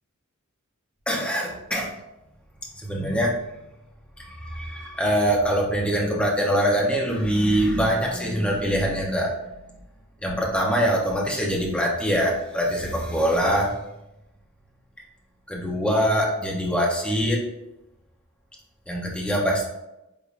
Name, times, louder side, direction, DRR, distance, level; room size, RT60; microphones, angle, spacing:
voice 1, 1.1-1.9 2.7-3.4 4.2-9.5 10.2-13.7 15.5-17.5 18.9-19.6, equal, 5° left, -2 dB, 0.6 m, -23 dB
3.6 x 3.3 x 2.4 m, 0.93 s
head